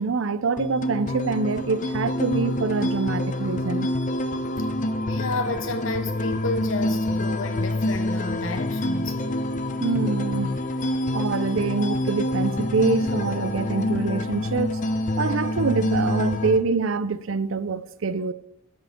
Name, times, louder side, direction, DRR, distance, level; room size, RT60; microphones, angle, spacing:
voice 1, 0.0-3.9 9.8-10.6 11.1-14.8 15.2-18.3, right 4 dB, 75° right, 0.6 m, -25 dB
sound 1, 0.6-16.6, left 1 dB, 40° left, 0.7 m, -27 dB
voice 2, 5.1-9.2, left 2 dB, 70° left, 1.2 m, -30 dB
12.5 x 7.7 x 3.7 m
head